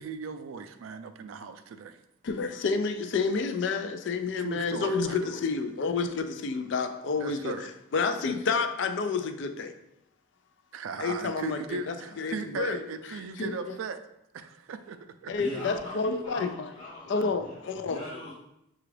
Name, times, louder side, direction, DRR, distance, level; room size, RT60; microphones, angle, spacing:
voice 1, 0.0-2.0 4.2-5.2 7.2-7.7 10.7-14.0 14.3-15.0 15.2-15.3, right 4 dB, 85° right, 9 dB, 0.4 m, -37 dB
voice 2, 2.2-7.5 7.9-9.7 11.0-12.8 13.1-13.8 15.3-16.7 17.1-18.0, left 4 dB, 65° left, 8 dB, 0.3 m, -29 dB
voice 3, 15.4-17.6 17.9-18.3, left 1 dB, 30° left, -12 dB, 1.0 m, -41 dB
5.8 x 2.3 x 3.2 m, 0.84 s
head